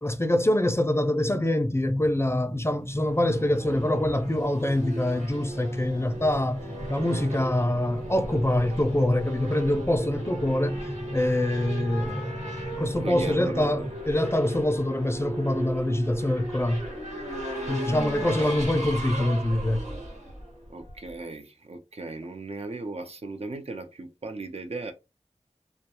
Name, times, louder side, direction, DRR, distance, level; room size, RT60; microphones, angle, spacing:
voice 1, 0.0-10.8 11.1-12.4 12.7-16.9 17.7-19.9, left 1 dB, 20° left, 0.3 m, -25 dB
sound 1, 1.6-13.9, equal, 25° right, 0.8 m, -38 dB
Race car auto racing / Accelerating revving vroom, 3.0-21.1, right 1 dB, 90° right, 1.2 m, -37 dB
voice 2, 13.0-13.9 18.0-18.5 20.7-24.9, right 3 dB, 60° right, 0.5 m, -37 dB
2.3 x 2.1 x 2.8 m
wide cardioid pair, 55°, 12 cm